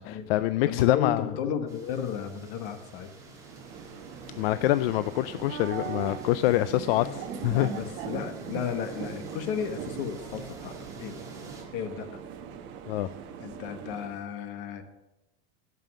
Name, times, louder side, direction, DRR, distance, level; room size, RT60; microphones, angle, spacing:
voice 1, 0.0-1.2 4.4-7.1 7.4-7.7 12.9-13.1, left 15 dB, 80° left, 14 dB, 0.4 m, -25 dB
voice 2, 0.7-3.1 6.9-7.1 7.5-11.2 11.7-12.2 13.4-14.8, left 7 dB, 55° left, 8 dB, 1.3 m, -34 dB
sound 1, 1.7-11.6, right 2 dB, 10° right, 1.9 m, -48 dB
sound 2, 3.4-14.2, right 7 dB, 40° right, 1.0 m, -40 dB
13.0 x 5.5 x 6.3 m, 1.0 s
supercardioid pair, 160°, 30 cm